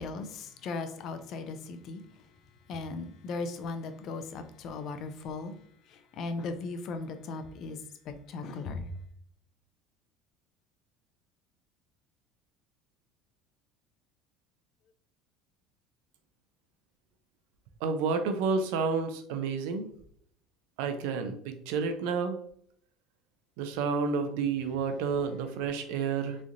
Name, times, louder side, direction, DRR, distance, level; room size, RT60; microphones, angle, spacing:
voice 1, 0.0-2.0 2.7-5.5 5.9-7.8 8.1-8.9, left 3 dB, 50° left, 0.5 m, -37 dB
voice 2, 17.8-19.9 20.8-22.4 23.6-26.4, right 5 dB, 80° right, 0.5 m, -30 dB
3.7 x 3.2 x 2.5 m
cardioid pair, 125°, 0 cm